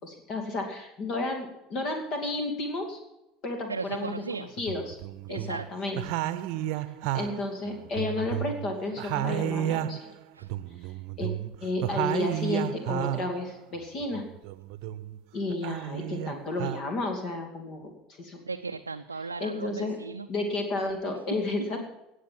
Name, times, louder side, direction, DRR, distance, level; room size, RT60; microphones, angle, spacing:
voice 1, 0.0-3.0 3.4-5.0 5.3-6.0 7.1-10.1 11.2-11.3 11.6-14.2 15.3-18.4 19.4-20.0 20.3-21.8, left 2 dB, 45° left, 4 dB, 2.4 m, -32 dB
voice 2, 3.7-4.5 5.3-5.7 10.3-10.5 18.4-20.3 21.7-21.8, right 4 dB, 80° right, 5 dB, 0.5 m, -36 dB
sound 1, 3.9-4.0 4.6-5.7 6.0-8.7 9.0-13.4 13.8-15.2 15.5-16.8, right 13 dB, 55° right, 0.8 m, -32 dB
18.5 x 6.7 x 7.5 m, 0.91 s
figure-of-eight pair, 70°, 0 cm